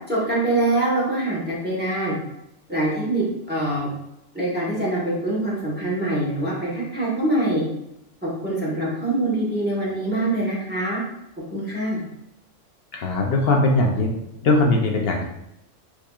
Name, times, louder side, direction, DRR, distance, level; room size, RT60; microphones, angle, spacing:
voice 1, 0.1-2.1 2.7-3.9 4.3-7.6 8.2-11.0 11.5-12.0, right 1 dB, 10° right, -7 dB, 1.0 m, -24 dB
voice 2, 12.9-15.2, left 2 dB, 65° left, 2 dB, 0.7 m, -20 dB
4.6 x 2.6 x 2.3 m, 0.84 s
omnidirectional pair, 1.3 m